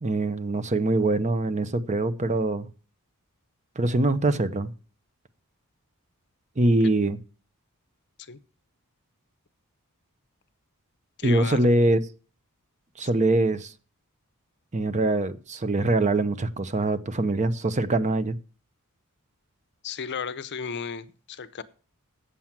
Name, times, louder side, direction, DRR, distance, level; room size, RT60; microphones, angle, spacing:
voice 1, 0.0-2.7 3.8-4.7 6.6-7.2 11.2-12.0 13.0-13.7 14.7-18.4, right 2 dB, 30° right, 0.7 m, -23 dB
voice 2, 11.2-11.7 13.0-13.1 19.8-21.6, left 6 dB, 50° left, 0.7 m, -34 dB
8.5 x 7.3 x 7.4 m
head